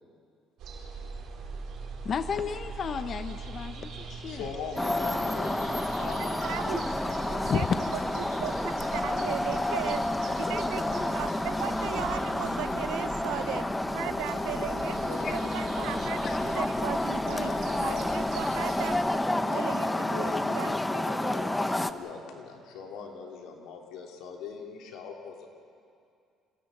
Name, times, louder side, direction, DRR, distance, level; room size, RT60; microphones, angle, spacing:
sound 1, 0.6-19.0, right 4 dB, 65° right, 4.6 m, -42 dB
voice 1, 2.0-4.5 7.4-7.7 15.2-15.4 16.0-16.4, left 7 dB, 45° left, 9 dB, 0.7 m, -33 dB
voice 2, 4.2-7.5 7.9-11.2 13.2-13.7 14.0-16.3 17.0-18.1 19.1-25.5, left 5 dB, 80° left, 1 dB, 3.4 m, -42 dB
sound 2, 4.8-21.9, left 1 dB, 10° left, 0.8 m, -30 dB
voice 3, 6.2-6.9 7.5-7.7 8.2-10.0 10.5-10.8 11.1-13.7 13.9-15.0 15.3-16.2 16.4-17.5 17.8-19.0 19.4-19.9 20.2-20.7, right 17 dB, 90° right, 17 dB, 0.5 m, -37 dB
27.0 x 17.0 x 7.7 m, 2.4 s
cardioid pair, 115°, 0 cm